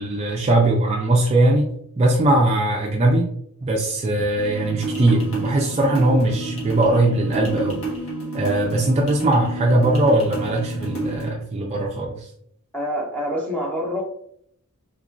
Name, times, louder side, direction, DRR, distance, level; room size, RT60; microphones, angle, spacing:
voice 1, 0.0-3.3 3.6-7.8 8.3-12.3, right 1 dB, 30° right, -1 dB, 0.3 m, -20 dB
sound 1, 4.4-11.3, right 2 dB, 65° left, 1.1 m, -30 dB
voice 2, 12.7-14.0, equal, 5° left, -3 dB, 0.8 m, -26 dB
3.5 x 3.0 x 2.5 m, 0.69 s
head